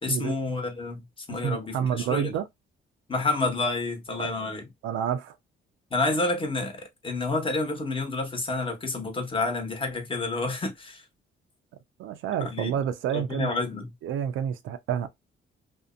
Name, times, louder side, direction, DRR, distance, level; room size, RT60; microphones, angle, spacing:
voice 1, 0.0-2.3 3.1-4.6 5.9-11.0 12.4-12.7 13.1-13.9, left 3 dB, 25° left, 1.0 m, -29 dB
voice 2, 1.4-2.4 4.2-4.3 4.8-5.4 12.0-13.6 14.0-15.1, right 9 dB, 80° right, 0.5 m, -29 dB
2.6 x 2.1 x 2.4 m
cardioid pair, 90°, 20 cm